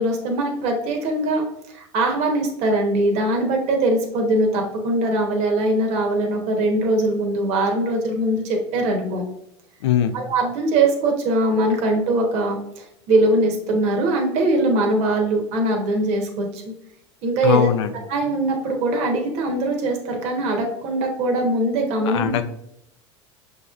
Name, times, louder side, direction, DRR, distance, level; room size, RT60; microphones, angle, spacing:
voice 1, 0.0-9.2 10.1-16.6 17.2-17.7 18.1-22.3, right 2 dB, 55° right, 2 dB, 1.0 m, -21 dB
voice 2, 9.8-10.2 17.4-17.9 22.0-22.4, left 9 dB, 85° left, 9 dB, 0.5 m, -20 dB
5.6 x 3.0 x 2.4 m, 0.79 s
supercardioid pair, 110°, 14 cm